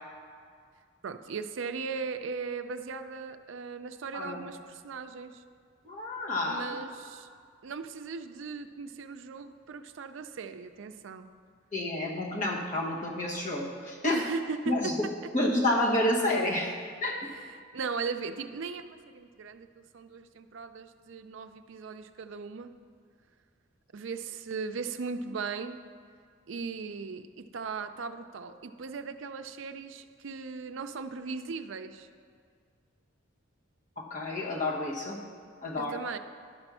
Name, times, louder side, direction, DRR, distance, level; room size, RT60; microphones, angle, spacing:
voice 1, 1.0-5.4 6.4-7.3 7.6-11.3 14.0-15.3 17.3-22.7 23.9-25.8 26.5-32.1 35.8-36.2, right 5 dB, 65° right, 9 dB, 0.4 m, -38 dB
voice 2, 4.1-4.4 5.8-6.8 11.7-14.2 14.7-15.1 15.3-16.7 17.0-17.2 34.0-35.2 35.6-36.0, left 1 dB, 40° left, -3 dB, 1.3 m, -29 dB
11.0 x 4.3 x 6.1 m, 2.1 s
head